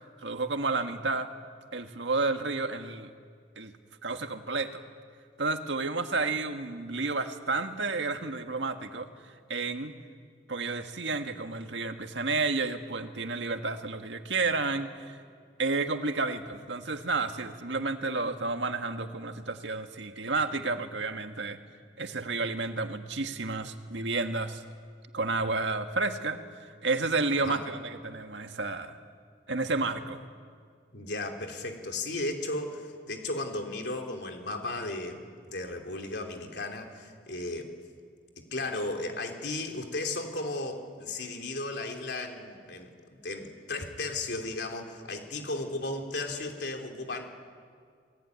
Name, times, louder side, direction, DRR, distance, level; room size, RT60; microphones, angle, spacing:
voice 1, 0.2-1.3 1.7-3.1 3.5-3.7 4.0-4.8 5.4-9.1 9.5-9.9 10.5-15.2 15.6-21.6 22.0-24.6 25.1-26.4 26.8-29.0 29.5-30.2, right 3 dB, 90° right, 6 dB, 1.8 m, -31 dB
voice 2, 30.9-37.7 38.4-47.3, left 2 dB, 70° left, 3 dB, 3.5 m, -35 dB
28.0 x 20.0 x 9.7 m, 2.1 s
head